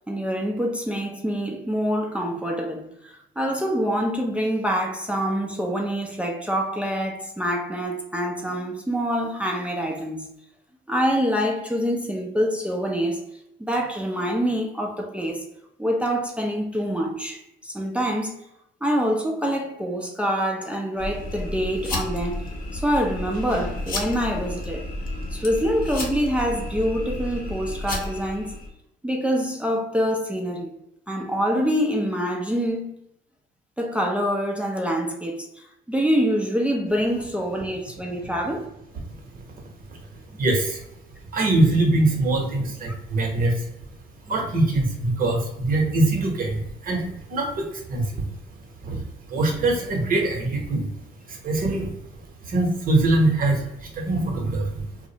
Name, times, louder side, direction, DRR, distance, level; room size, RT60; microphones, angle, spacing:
voice 1, 0.1-10.3 10.9-13.2 13.6-15.4 15.8-18.4 18.8-22.5 22.7-24.9 25.3-28.5 29.0-30.7 31.1-32.9 33.8-38.7, equal, 5° right, 0.4 m, -25 dB
sound 1, 21.0-28.7, left 1 dB, 45° left, 0.7 m, -32 dB
voice 2, 39.0-40.9 41.3-43.9 44.2-55.1, right 2 dB, 45° right, 0.8 m, -24 dB
2.4 x 2.0 x 2.7 m
supercardioid pair, 80°, 20 cm